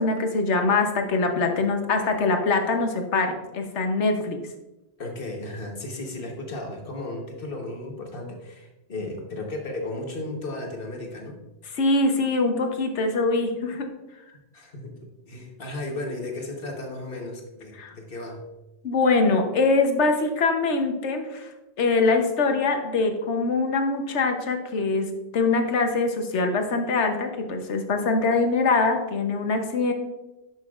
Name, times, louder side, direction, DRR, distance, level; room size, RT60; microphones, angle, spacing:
voice 1, 0.0-4.4 11.7-13.9 17.8-17.9 18.8-21.5 21.8-29.9, left 3 dB, 65° left, 5 dB, 1.2 m, -23 dB
voice 2, 5.0-11.4 14.5-18.4, left 2 dB, 50° left, 2 dB, 1.3 m, -35 dB
11.0 x 6.0 x 2.4 m, 1.0 s
omnidirectional pair, 1.3 m